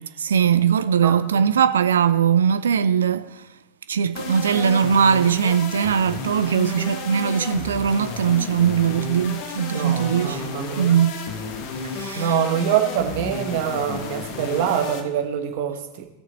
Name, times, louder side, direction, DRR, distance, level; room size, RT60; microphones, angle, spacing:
voice 1, 0.2-3.5 3.9-10.5 10.8-11.1 11.9-12.3, right 8 dB, 65° right, 0.3 m, -20 dB
voice 2, 1.0-1.4 9.7-10.9 12.1-16.1, right 9 dB, 50° right, 1.4 m, -25 dB
sound 1, 4.1-15.0, left 5 dB, 45° left, 1.1 m, -32 dB
18.0 x 6.6 x 3.9 m
figure-of-eight pair, 90°, 0 cm